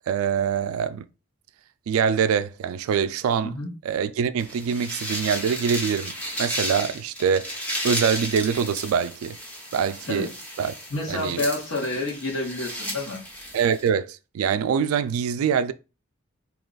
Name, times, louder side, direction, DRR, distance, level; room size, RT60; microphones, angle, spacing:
voice 1, 0.1-1.1 1.9-3.5 3.8-7.6 7.8-9.4 9.7-10.3 10.6-10.7 11.1-11.4 13.5-15.7, right 7 dB, 85° right, 0.3 m, -24 dB
sound 1, 4.4-13.9, equal, 5° left, 0.7 m, -33 dB
voice 2, 10.9-13.2, left 2 dB, 75° left, 1.3 m, -29 dB
2.8 x 2.3 x 3.8 m
head